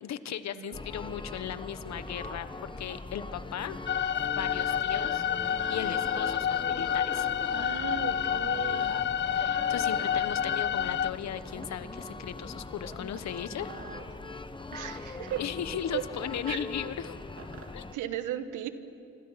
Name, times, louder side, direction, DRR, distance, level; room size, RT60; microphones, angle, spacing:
voice 1, 0.0-3.8 4.2-7.3 9.3-13.7 15.4-17.2 17.7-17.8, left 9 dB, 65° left, 13 dB, 1.1 m, -37 dB
sound 1, 0.7-17.9, left 3 dB, 15° left, 1.0 m, -41 dB
sound 2, 3.0-18.0, right 4 dB, 45° right, 3.3 m, -55 dB
sound 3, 3.9-11.1, left 9 dB, 40° left, 0.5 m, -29 dB
voice 2, 7.5-9.0 14.7-15.4 15.9-16.0 16.5-16.6 17.9-18.7, right 11 dB, 85° right, 10 dB, 1.4 m, -36 dB
27.0 x 26.0 x 5.8 m, 2.6 s
cardioid pair, 90°, 30 cm